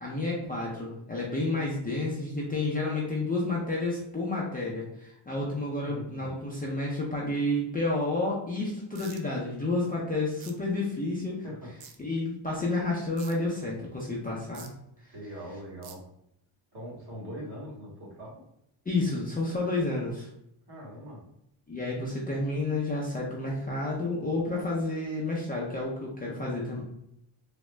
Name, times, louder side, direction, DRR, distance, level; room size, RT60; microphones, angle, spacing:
voice 1, 0.0-11.4 12.0-14.7 15.0-15.1 18.9-20.3 21.7-26.8, left 2 dB, 20° left, -5 dB, 0.4 m, -30 dB
voice 2, 5.8-6.3 11.4-11.7 15.1-16.0 16.7-18.4 20.7-21.2, equal, 50° right, -4 dB, 1.3 m, -42 dB
sound 1, 9.0-9.2 10.4-10.5 11.8-12.0 13.2-13.3 14.5-14.7 15.8-15.9, right 7 dB, 70° right, 0.6 m, -46 dB
3.5 x 2.0 x 3.1 m, 0.78 s
wide cardioid pair, 160°, 49 cm